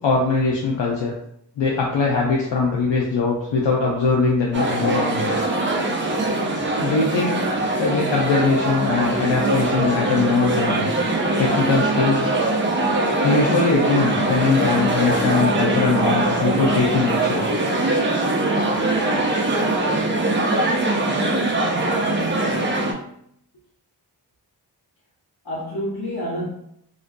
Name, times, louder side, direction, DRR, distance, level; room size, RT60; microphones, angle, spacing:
voice 1, 0.0-1.1 1.6-5.3 6.8-7.4 7.8-10.9 11.4-12.4 13.2-17.5, left 4 dB, 85° left, 0.5 m, -21 dB
sound 1, 4.5-22.9, right 2 dB, 30° right, 0.4 m, -22 dB
voice 2, 22.5-23.1 25.4-26.4, equal, 60° left, 1.1 m, -30 dB
2.5 x 2.1 x 2.5 m
wide cardioid pair, 90°, 42 cm